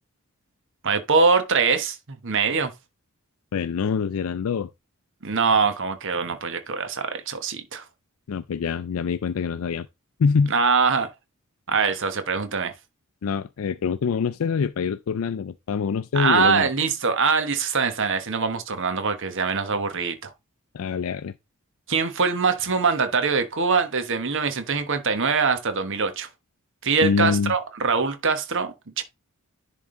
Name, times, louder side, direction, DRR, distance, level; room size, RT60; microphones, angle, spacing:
voice 1, 0.8-2.7 5.2-7.8 10.5-11.1 11.7-12.7 16.1-20.3 21.9-26.3 26.8-29.0, right 5 dB, 55° right, 1.2 m, -23 dB
voice 2, 3.5-4.7 8.3-9.9 10.2-10.5 13.2-16.7 20.7-21.3 27.0-27.5, left 6 dB, 65° left, 0.4 m, -25 dB
10.5 x 3.6 x 3.8 m
head